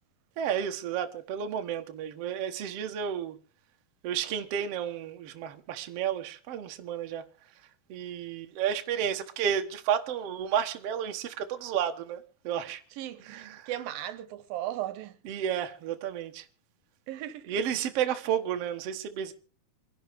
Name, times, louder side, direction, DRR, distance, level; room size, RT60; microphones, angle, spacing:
voice 1, 0.4-3.4 4.0-7.2 7.9-12.8 13.2-13.7 15.3-16.5 17.5-19.3, right 9 dB, 55° right, 1.8 m, -32 dB
voice 2, 13.0-15.2 17.1-17.5, right 13 dB, 75° right, 2.6 m, -37 dB
27.0 x 11.0 x 3.5 m
omnidirectional pair, 4.2 m